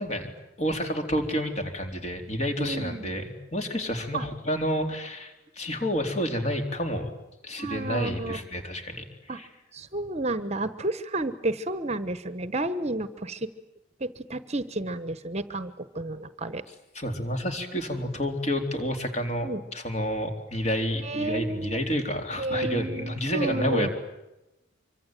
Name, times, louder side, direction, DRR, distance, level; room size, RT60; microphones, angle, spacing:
voice 1, 0.0-7.1 7.4-9.5 16.9-23.9, equal, 35° left, 5 dB, 3.9 m, -29 dB
voice 2, 2.6-3.1 4.1-4.3 7.6-8.4 9.3-9.4 9.7-13.5 14.0-16.6 19.4-19.6 21.0-21.9 22.4-23.9, right 2 dB, 35° right, 13 dB, 1.1 m, -31 dB
25.5 x 24.5 x 9.1 m, 0.94 s
head